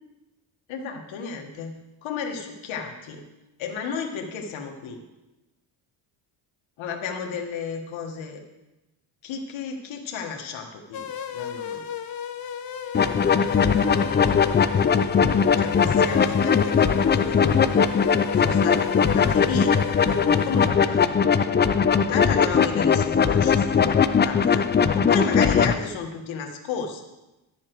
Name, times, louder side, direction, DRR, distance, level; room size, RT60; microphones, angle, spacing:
voice 1, 0.7-3.2 3.6-5.0 6.8-8.4 9.2-11.1 11.3-11.9 13.1-13.2 13.8-14.3 15.6-17.4 18.3-21.1 22.0-24.7 24.9-27.1, left 5 dB, 80° left, 2 dB, 1.4 m, -33 dB
sound 1, 10.9-20.7, left 7 dB, 50° left, 1.0 m, -34 dB
sound 2, 12.9-25.7, left 6 dB, 25° left, 0.4 m, -20 dB
11.0 x 7.3 x 4.5 m, 1.0 s
cardioid pair, 90°, 46 cm